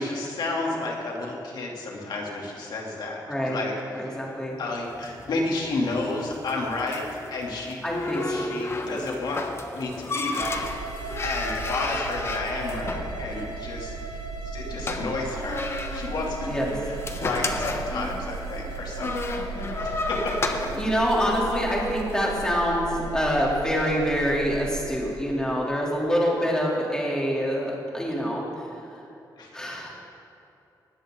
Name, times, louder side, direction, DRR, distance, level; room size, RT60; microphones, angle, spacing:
voice 1, 0.0-3.7 4.0-4.2 4.6-7.8 8.3-9.4 9.7-10.6 11.2-15.6 15.9-20.4 29.4-29.6, left 2 dB, 75° left, -2 dB, 3.1 m, -31 dB
voice 2, 3.3-3.6 3.9-4.6 7.8-8.5 16.5-16.7 20.7-28.7 29.5-29.9, equal, 10° left, -4 dB, 3.3 m, -26 dB
sound 1, 4.9-22.2, left 3 dB, 35° left, 1.1 m, -33 dB
sound 2, 10.4-24.9, right 4 dB, 60° right, 2.9 m, -36 dB
20.0 x 13.5 x 4.0 m, 2.8 s
wide cardioid pair, 120°, 8 cm